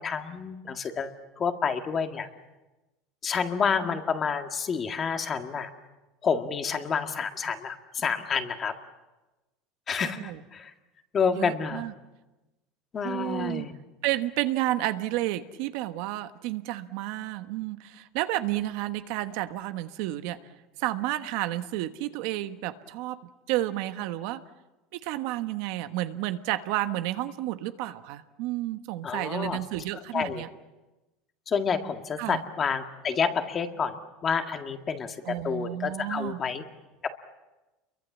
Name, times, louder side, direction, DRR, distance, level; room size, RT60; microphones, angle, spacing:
voice 1, 0.0-2.3 3.2-5.7 6.2-8.7 9.9-10.7 11.1-11.9 12.9-13.7 29.0-29.6 30.1-30.4 31.5-34.0 34.2-36.6 37.0-37.1, left 6 dB, 25° left, 6 dB, 1.9 m, -29 dB
voice 2, 10.0-10.4 11.3-11.9 13.0-13.7 14.0-20.4 20.8-23.2 23.5-24.4 24.9-30.5 32.2-32.4 35.2-36.4, right 15 dB, 65° right, 9 dB, 1.2 m, -31 dB
29.0 x 23.0 x 7.4 m, 1.1 s
supercardioid pair, 145°, 0 cm